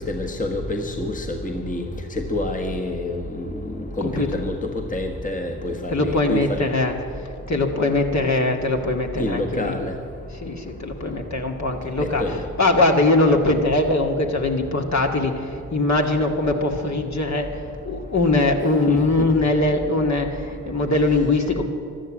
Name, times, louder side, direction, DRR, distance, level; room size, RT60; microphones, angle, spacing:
voice 1, 0.0-1.9 2.1-3.5 4.0-6.6 9.2-9.9 12.0-12.3 18.9-19.0, left 1 dB, 20° left, 3 dB, 1.5 m, -27 dB
voice 2, 5.9-6.9 7.5-9.8 10.4-12.2 12.6-21.7, left 2 dB, 45° left, 2 dB, 2.0 m, -21 dB
12.5 x 12.0 x 8.8 m, 2.6 s
supercardioid pair, 45°, 38 cm